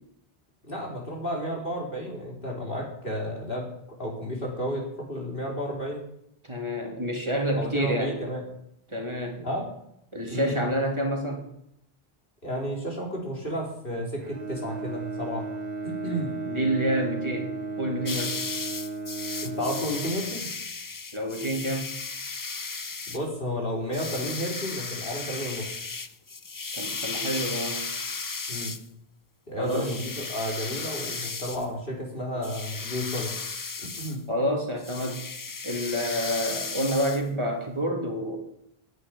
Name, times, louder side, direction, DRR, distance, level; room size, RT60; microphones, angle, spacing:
voice 1, 0.7-6.0 7.5-8.4 9.4-9.7 10.3-10.6 12.4-15.5 15.8-16.3 19.4-20.5 23.1-25.7 28.5-28.8 29.5-33.3 33.8-34.2, equal, 60° left, -1 dB, 3.9 m, -32 dB
voice 2, 6.5-8.2 8.9-9.4 10.1-11.4 16.5-18.5 21.1-21.9 26.7-27.9 29.6-29.9 34.3-35.2 35.6-38.4, equal, 30° right, 1 dB, 2.6 m, -28 dB
Bowed string instrument, 14.2-20.9, right 3 dB, 45° right, 1.0 m, -35 dB
sound 1, 18.1-23.3 23.9-28.9 29.7-31.7 32.4-34.2 34.8-37.2, left 4 dB, 30° left, 0.4 m, -35 dB
11.0 x 8.1 x 9.8 m, 0.78 s
omnidirectional pair, 1.0 m